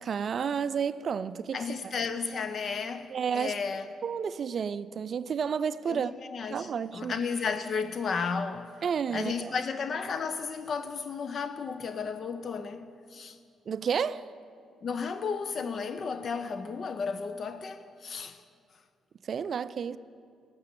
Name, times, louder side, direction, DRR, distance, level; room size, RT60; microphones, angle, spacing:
voice 1, 0.0-1.7 3.1-3.6 4.0-6.1 6.5-7.1 8.8-9.5 13.7-14.3 19.2-20.0, right 7 dB, 50° right, 0.3 m, -31 dB
voice 2, 1.5-3.9 5.9-8.7 9.1-13.4 14.8-18.4, left 5 dB, 50° left, 0.5 m, -33 dB
12.5 x 6.8 x 9.4 m
cardioid pair, 90°, 0 cm